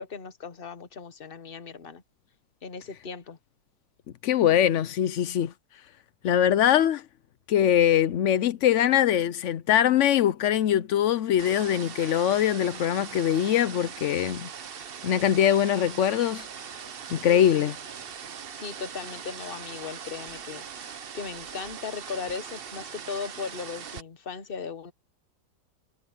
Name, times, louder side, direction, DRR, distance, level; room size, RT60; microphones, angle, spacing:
voice 1, 0.0-2.0 2.6-3.4 17.2-17.6 18.6-24.9, left 5 dB, 35° left, 1.1 m, -37 dB
voice 2, 4.2-5.5 6.2-7.0 7.5-14.5 15.0-16.5 17.1-17.8, left 10 dB, 80° left, 0.6 m, -22 dB
sound 1, 11.4-24.0, right 7 dB, 50° right, 0.7 m, -41 dB
omnidirectional pair, 2.0 m